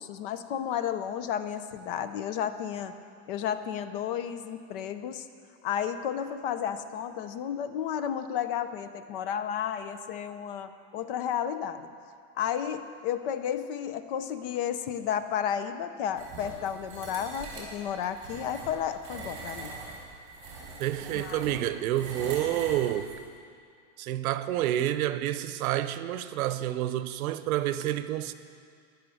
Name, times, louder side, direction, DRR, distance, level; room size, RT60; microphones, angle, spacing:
voice 1, 0.0-2.9 3.3-5.3 5.6-11.9 12.3-19.7 21.1-21.4, left 9 dB, 40° left, 0.6 m, -32 dB
sound 1, 16.2-23.2, right 3 dB, 40° right, 4.5 m, -42 dB
voice 2, 20.8-23.1 24.0-28.3, right 13 dB, 90° right, 0.8 m, -29 dB
13.5 x 10.5 x 6.2 m
supercardioid pair, 175°, 42 cm